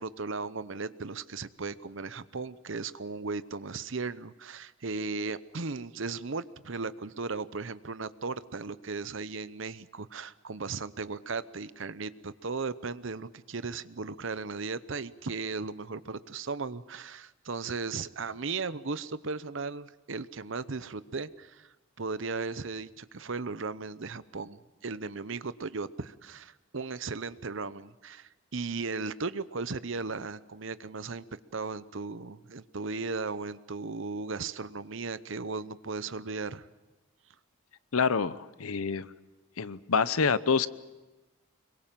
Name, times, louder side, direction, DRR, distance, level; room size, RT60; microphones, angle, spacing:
voice 1, 0.0-31.2 31.5-36.7, right 4 dB, 60° right, 15 dB, 0.8 m, -36 dB
voice 2, 37.9-39.1 39.6-40.7, left 5 dB, 80° left, 16 dB, 0.8 m, -27 dB
25.5 x 23.0 x 7.5 m, 1.1 s
head